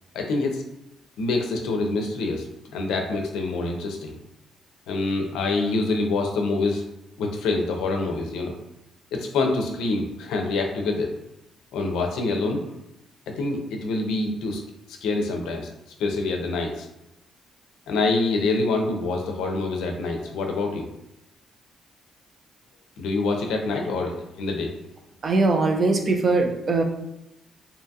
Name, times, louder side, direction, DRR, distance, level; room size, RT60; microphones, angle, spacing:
voice 1, 0.1-0.6 1.2-2.5 2.7-4.2 4.9-6.8 7.2-8.5 9.1-11.1 11.7-12.6 13.3-14.6 15.0-15.7 16.0-16.9 17.9-20.9 23.0-24.7, left 3 dB, 85° left, 3 dB, 0.4 m, -26 dB
voice 2, 25.2-26.8, right 3 dB, 40° right, 3 dB, 0.4 m, -21 dB
2.7 x 2.6 x 2.3 m, 0.87 s
cardioid pair, 90°, 0 cm